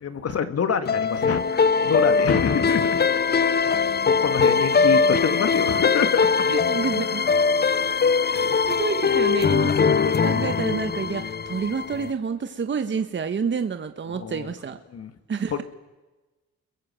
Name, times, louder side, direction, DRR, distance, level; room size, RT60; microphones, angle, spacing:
voice 1, 0.0-3.0 3.6-6.4 8.4-8.6 9.6-9.8 14.1-14.5 14.9-15.1 15.5-15.6, left 6 dB, 50° left, 9 dB, 2.5 m, -27 dB
sound 1, 0.9-12.1, left 5 dB, 35° left, 0.9 m, -21 dB
voice 2, 6.5-7.2 8.2-14.8 15.3-15.6, right 6 dB, 40° right, 8 dB, 1.5 m, -29 dB
30.0 x 22.5 x 7.9 m, 1.1 s
cardioid pair, 90°, 30 cm